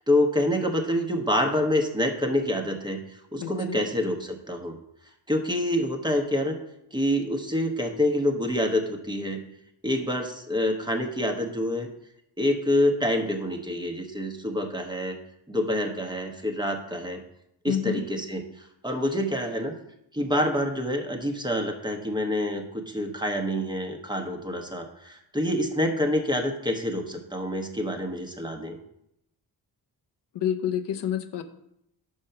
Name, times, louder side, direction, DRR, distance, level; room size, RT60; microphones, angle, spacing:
voice 1, 0.0-4.8 5.3-6.6 6.9-9.4 9.8-11.9 12.4-15.2 15.5-17.2 17.6-19.7 20.1-28.8, left 1 dB, 10° right, 3 dB, 0.9 m, -27 dB
voice 2, 3.4-3.8 17.7-18.0 30.3-31.4, left 9 dB, 80° left, 6 dB, 0.7 m, -28 dB
5.6 x 5.2 x 5.6 m, 0.79 s
cardioid pair, 85°, 41 cm